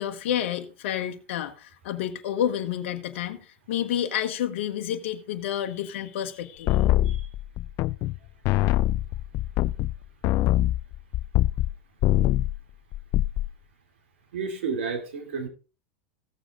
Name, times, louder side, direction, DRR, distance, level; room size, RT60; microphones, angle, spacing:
voice 1, 0.0-6.8, left 10 dB, 70° left, 1.3 m, -30 dB
sound 1, 6.7-8.2 8.4-11.7 12.0-12.6 12.9-13.5, left 15 dB, 45° left, 0.4 m, -23 dB
voice 2, 14.3-15.5, right 5 dB, 75° right, 3.1 m, -31 dB
15.5 x 7.2 x 3.8 m
hypercardioid pair, 105°, 7 cm